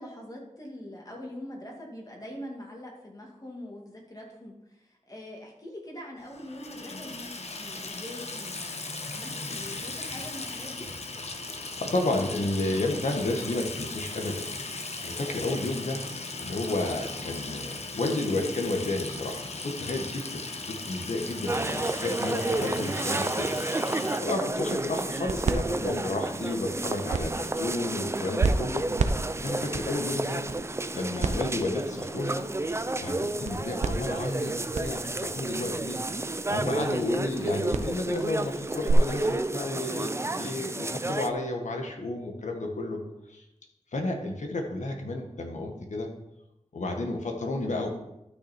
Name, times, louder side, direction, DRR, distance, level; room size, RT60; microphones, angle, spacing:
voice 1, 0.0-8.6 9.1-10.8 26.6-26.9, left 1 dB, 30° left, -1 dB, 2.6 m, -43 dB
Water tap faucet / Sink (filling or washing), 6.3-24.2, left 3 dB, 60° left, 1.2 m, -37 dB
voice 2, 11.8-14.5 15.0-16.0 16.4-20.4 20.7-23.5 24.2-28.9 29.4-30.4 30.9-32.4 33.0-36.0 36.5-43.0 43.3-43.4 43.9-46.1 46.7-47.9, left 2 dB, 75° left, 3 dB, 1.7 m, -31 dB
sound 1, 21.5-41.3, right 2 dB, 20° right, 0.5 m, -31 dB
sound 2, 24.5-38.9, right 4 dB, 70° right, 0.7 m, -34 dB
12.0 x 6.2 x 4.5 m, 0.87 s
wide cardioid pair, 95°, 13 cm